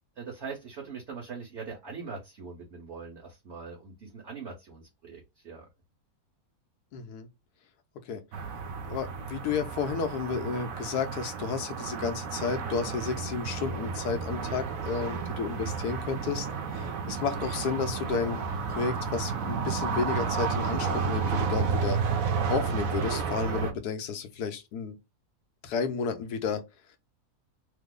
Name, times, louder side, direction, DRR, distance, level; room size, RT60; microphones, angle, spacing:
voice 1, 0.2-5.7, right 5 dB, 50° right, 1.1 m, -42 dB
voice 2, 6.9-7.3 8.0-8.2 8.9-16.5 16.7-18.4 18.7-22.0 22.5-25.0 25.6-26.6, left 5 dB, 85° left, 1.3 m, -32 dB
sound 1, 8.3-23.7, right 5 dB, 70° right, 1.0 m, -31 dB
3.2 x 2.0 x 3.6 m
omnidirectional pair, 1.6 m